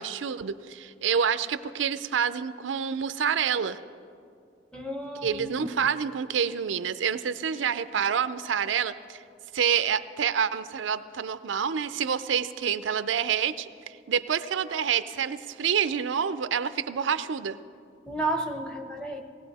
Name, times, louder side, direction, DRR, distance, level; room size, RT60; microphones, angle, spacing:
voice 1, 0.0-3.8 5.2-9.2 9.5-17.6, right 7 dB, 85° right, 13 dB, 0.5 m, -28 dB
voice 2, 4.7-5.7 18.0-19.2, right 2 dB, 5° left, 5 dB, 0.8 m, -32 dB
19.0 x 16.5 x 4.1 m, 2.4 s
head